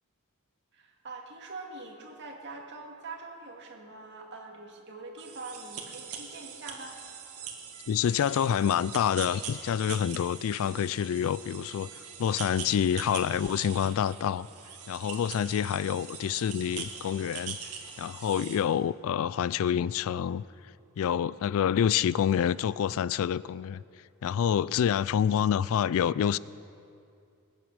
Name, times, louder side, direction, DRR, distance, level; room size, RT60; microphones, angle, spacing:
voice 1, 0.7-7.0, right 3 dB, 55° right, 1 dB, 2.0 m, -44 dB
sound 1, 5.2-18.6, right 7 dB, 85° right, 1.7 m, -42 dB
voice 2, 7.9-14.5 14.9-17.6 18.0-20.4 21.0-23.8 24.2-26.4, left 8 dB, 65° left, 20 dB, 0.3 m, -27 dB
21.0 x 9.3 x 6.4 m, 2.5 s
head